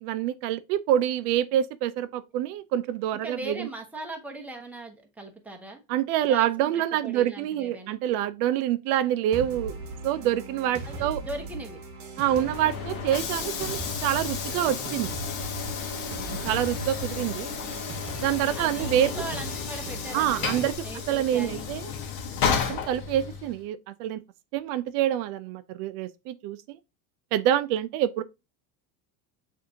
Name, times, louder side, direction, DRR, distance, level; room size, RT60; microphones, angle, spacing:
voice 1, 0.0-3.7 5.9-9.8 10.0-11.2 12.2-15.1 16.4-17.5 18.2-19.1 20.1-20.7 21.1-21.9 22.7-24.2 24.5-26.8 27.3-28.2, right 11 dB, 80° right, 0.6 m, -26 dB
voice 2, 3.2-5.8 6.2-6.7 7.0-8.0 10.8-11.8 12.2-12.5 16.1-16.5 18.5-21.7, right 2 dB, 5° right, 0.8 m, -39 dB
sound 1, 9.3-20.7, right 3 dB, 40° right, 1.0 m, -38 dB
Train / Sliding door, 12.2-23.6, left 6 dB, 50° left, 1.1 m, -33 dB
6.6 x 2.8 x 2.8 m
supercardioid pair, 130°, 45 cm